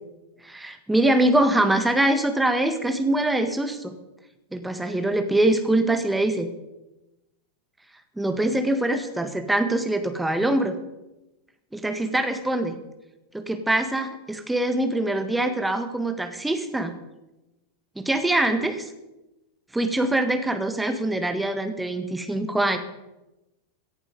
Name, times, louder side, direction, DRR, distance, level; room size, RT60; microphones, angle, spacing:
voice 1, 0.4-3.9 4.5-6.5 8.2-10.7 11.7-12.7 13.3-16.9 17.9-18.8 19.7-22.8, right 1 dB, 5° right, 7 dB, 1.6 m, -23 dB
17.5 x 11.0 x 5.2 m, 1.0 s
figure-of-eight pair, 90°, 0 cm